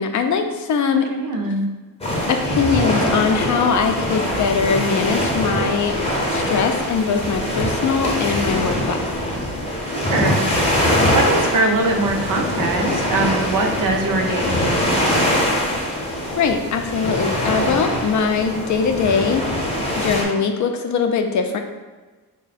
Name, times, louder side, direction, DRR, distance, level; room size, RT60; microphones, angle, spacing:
voice 1, 0.0-1.1 2.3-6.0 6.3-9.1 16.4-19.4 20.0-21.6, left 5 dB, 50° left, 6 dB, 0.4 m, -21 dB
voice 2, 0.9-1.7 9.9-10.5 11.1-15.4, right 2 dB, 55° right, 3 dB, 0.6 m, -22 dB
sound 1, 2.0-20.2, left 1 dB, 15° left, 0.8 m, -22 dB
3.5 x 2.2 x 4.0 m, 1.3 s
cardioid pair, 120°, 38 cm